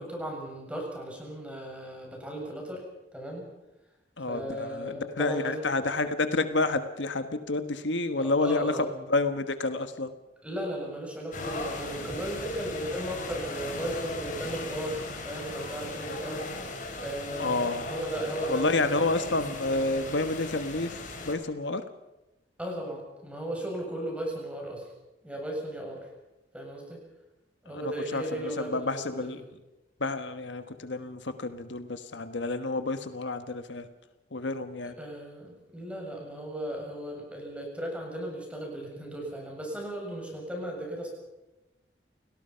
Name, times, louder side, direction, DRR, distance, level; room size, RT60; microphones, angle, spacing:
voice 1, 0.0-2.8 3.1-3.5 4.3-5.8 8.2-8.9 10.4-19.4 22.6-24.8 25.2-26.1 26.5-27.0 27.6-29.1 35.0-41.1, right 1 dB, 5° right, 0 dB, 7.4 m, -36 dB
voice 2, 4.2-10.1 17.4-17.9 18.5-21.8 27.7-29.4 30.0-33.9 34.3-35.0, left 2 dB, 80° left, 9 dB, 1.4 m, -29 dB
sound 1, 11.3-21.3, left 2 dB, 45° left, 4.7 m, -37 dB
29.5 x 18.0 x 5.8 m, 0.98 s
head